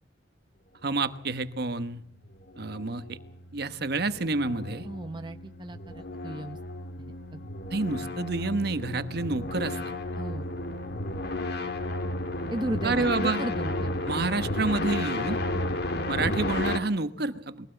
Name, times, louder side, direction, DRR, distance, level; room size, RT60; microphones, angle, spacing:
voice 1, 0.8-2.0 2.6-3.2 3.5-4.9 7.7-9.8 12.8-13.4 14.0-15.4 16.1-17.7, right 3 dB, 55° right, 11 dB, 1.1 m, -29 dB
sound 1, 2.2-16.8, left 2 dB, 60° left, 1.6 m, -33 dB
voice 2, 4.8-6.6 7.3-7.4 7.7-7.8 10.2-10.5 12.5-14.0 16.2-16.3, right 1 dB, 25° right, 7 dB, 0.8 m, -35 dB
22.0 x 17.0 x 7.8 m, 0.69 s
head